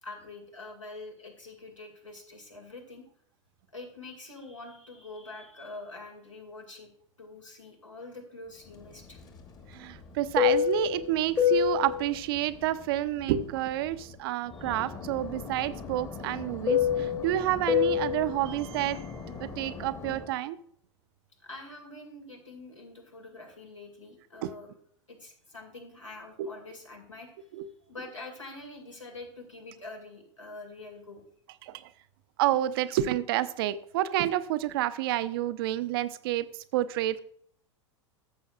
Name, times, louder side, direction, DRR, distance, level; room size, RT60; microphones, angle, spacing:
voice 1, 0.0-3.0 3.7-6.9 7.2-9.2 14.5-14.8 21.4-24.7 25.1-27.5 27.9-31.2, left 2 dB, 85° left, 1 dB, 2.2 m, -45 dB
Fixed-wing aircraft airplane, 8.8-14.1 14.5-20.3, left 9 dB, 25° left, 1.3 m, -30 dB
voice 2, 9.7-19.1 19.4-20.6 24.4-24.5 26.4-26.5 27.5-27.7 31.6-31.8 32.4-36.5 36.7-37.2, right 13 dB, 50° right, 14 dB, 0.5 m, -29 dB
14.5 x 7.0 x 2.4 m, 0.64 s
figure-of-eight pair, 90°, 16 cm